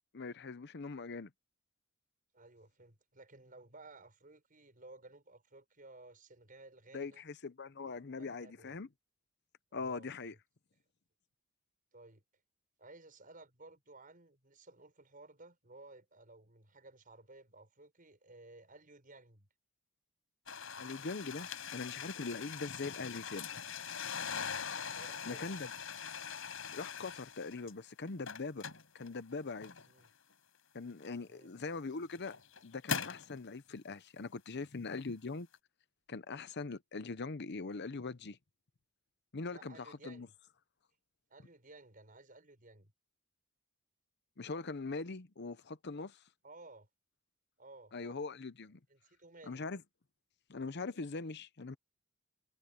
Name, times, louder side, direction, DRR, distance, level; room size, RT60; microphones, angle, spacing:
voice 1, 0.1-1.3 6.9-8.9 9.7-10.3 20.8-23.5 25.3-25.7 26.7-28.6 28.9-29.8 30.7-32.3 32.6-35.5 36.1-38.4 39.3-39.8 40.0-40.3 44.4-46.2 47.9-48.8 49.5-49.8 50.5-51.8, left 4 dB, 55° left, 0.8 m, -42 dB
voice 2, 2.3-7.2 8.2-8.8 9.7-10.4 11.9-12.2 12.8-19.5 25.0-25.6 29.8-30.1 31.3-31.5 39.5-40.3 41.3-42.9 46.4-46.9 47.6-48.1 48.9-49.8, right 2 dB, 40° right, 6.6 m, -57 dB
sound 1, 20.5-27.7 28.1-30.1 31.0-31.1 31.8-33.3, left 6 dB, 75° left, 5.5 m, -42 dB
head